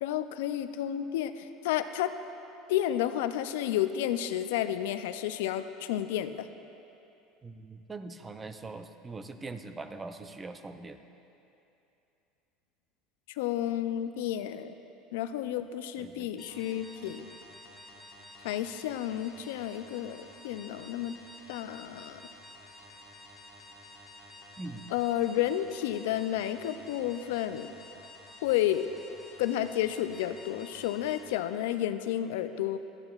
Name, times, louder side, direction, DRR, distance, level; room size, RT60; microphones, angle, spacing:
voice 1, 0.0-2.1 2.7-6.5 13.4-14.7 15.1-17.3 18.4-21.1 21.5-22.2 24.9-27.7 28.4-28.9 29.4-32.8, left 12 dB, 85° left, 11 dB, 0.3 m, -31 dB
voice 2, 7.4-11.0 16.0-16.5 24.6-24.9, right 3 dB, 20° right, 8 dB, 0.4 m, -42 dB
sound 1, 16.4-31.3, left 2 dB, 10° left, 1.2 m, -51 dB
12.0 x 9.6 x 2.4 m, 2.8 s
supercardioid pair, 130°, 0 cm